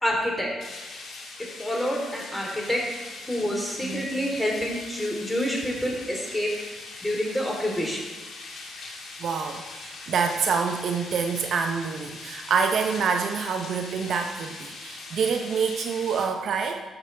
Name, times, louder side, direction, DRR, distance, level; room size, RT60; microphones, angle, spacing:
voice 1, 0.0-0.5 1.6-2.8 3.3-6.5 7.0-8.0, equal, 10° left, -2 dB, 3.4 m, -27 dB
sound 1, 0.6-16.3, left 3 dB, 65° left, 2.3 m, -41 dB
voice 2, 3.8-4.2 9.2-16.8, right 6 dB, 65° right, 5 dB, 0.8 m, -27 dB
13.0 x 7.1 x 3.4 m, 1.2 s
supercardioid pair, 60°, 0 cm